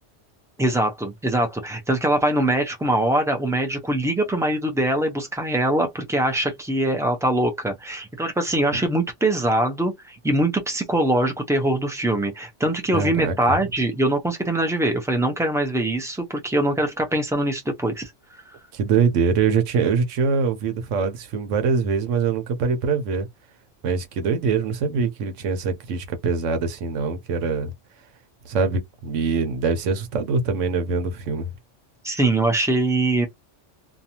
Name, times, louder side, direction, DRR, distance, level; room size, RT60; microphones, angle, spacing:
voice 1, 0.6-18.1 32.0-33.3, right 1 dB, 5° right, 0.4 m, -23 dB
voice 2, 12.9-13.4 18.7-23.3 23.8-27.7 28.4-31.5, right 5 dB, 85° right, 1.1 m, -23 dB
2.6 x 2.3 x 2.8 m
omnidirectional pair, 1.2 m